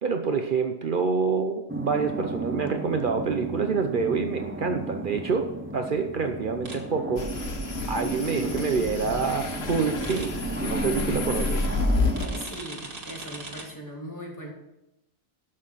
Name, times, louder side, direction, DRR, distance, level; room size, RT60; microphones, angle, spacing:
voice 1, 0.0-7.2 7.9-11.7, right 5 dB, 55° right, 6 dB, 0.9 m, -27 dB
sound 1, 1.7-12.5, right 2 dB, 10° right, 0.8 m, -34 dB
sound 2, 6.6-6.8 10.0-10.3 12.1-13.6, right 2 dB, 70° right, 2.1 m, -39 dB
sound 3, 7.2-12.3, left 3 dB, 75° left, 1.4 m, -30 dB
voice 2, 12.3-14.5, equal, 15° left, -1 dB, 2.6 m, -39 dB
12.5 x 6.6 x 5.7 m, 0.91 s
omnidirectional pair, 1.1 m